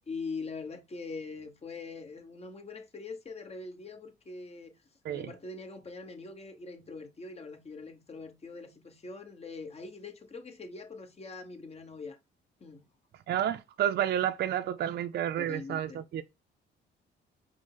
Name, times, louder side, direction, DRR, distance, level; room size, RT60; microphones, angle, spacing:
voice 1, 0.1-4.7 5.1-12.2 12.6-12.9 15.4-16.0, left 4 dB, 30° left, 1.0 m, -43 dB
voice 2, 13.3-16.2, right 10 dB, 55° right, 0.4 m, -30 dB
5.0 x 2.1 x 3.7 m
cardioid pair, 90°, 20 cm